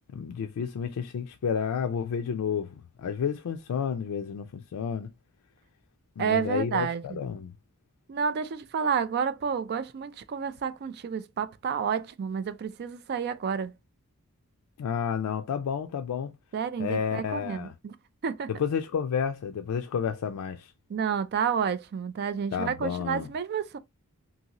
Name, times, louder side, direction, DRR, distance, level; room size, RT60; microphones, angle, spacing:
voice 1, 0.1-5.1 6.2-7.5 14.8-16.3 16.8-17.7 18.5-20.7 22.5-23.3, left 7 dB, 80° left, 0.4 m, -31 dB
voice 2, 6.2-7.2 8.1-13.7 16.5-18.0 18.2-18.5 20.9-23.8, right 6 dB, 45° right, 0.3 m, -30 dB
2.7 x 2.7 x 2.8 m
head